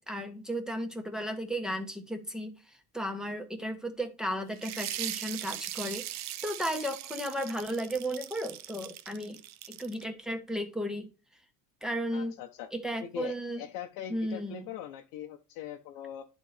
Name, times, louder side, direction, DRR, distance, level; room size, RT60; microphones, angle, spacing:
voice 1, 0.0-9.4 9.7-11.1 11.8-12.3 12.7-13.6 14.1-14.6, equal, ahead, 1.2 m, -34 dB
sound 1, 4.6-10.0, right 13 dB, 55° right, 0.7 m, -40 dB
voice 2, 12.1-12.7 13.0-16.3, left 10 dB, 80° left, 1.0 m, -41 dB
11.5 x 4.2 x 3.4 m
cardioid pair, 135°, 34 cm